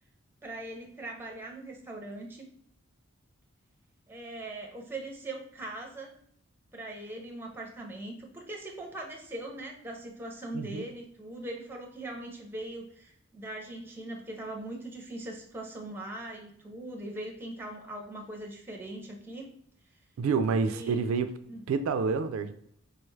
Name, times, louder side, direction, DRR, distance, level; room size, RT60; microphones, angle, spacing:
voice 1, 0.4-2.5 4.1-6.2 6.7-19.5 20.6-21.0 21.5-21.7, right 1 dB, 10° right, 0 dB, 0.5 m, -41 dB
voice 2, 10.5-10.8 20.2-21.3 21.7-22.5, right 5 dB, 75° right, 9 dB, 0.3 m, -28 dB
4.7 x 2.3 x 3.1 m, 0.67 s
head